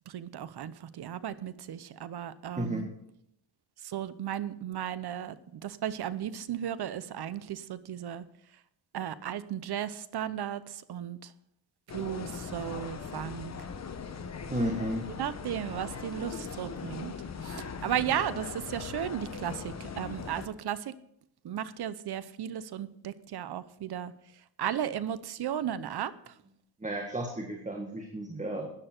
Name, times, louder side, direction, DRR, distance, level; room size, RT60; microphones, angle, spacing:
voice 1, 0.1-2.9 3.8-8.3 8.9-11.3 11.9-13.5 15.2-17.1 17.4-20.9 21.4-24.1 24.6-26.3, right 10 dB, 60° right, 16 dB, 0.8 m, -35 dB
sound 1, 11.9-20.5, left 6 dB, 35° left, 1.1 m, -40 dB
voice 2, 14.5-15.1 26.8-28.7, right 1 dB, 15° right, 2 dB, 1.6 m, -33 dB
13.0 x 10.0 x 4.5 m, 0.75 s
cardioid pair, 110°, 45 cm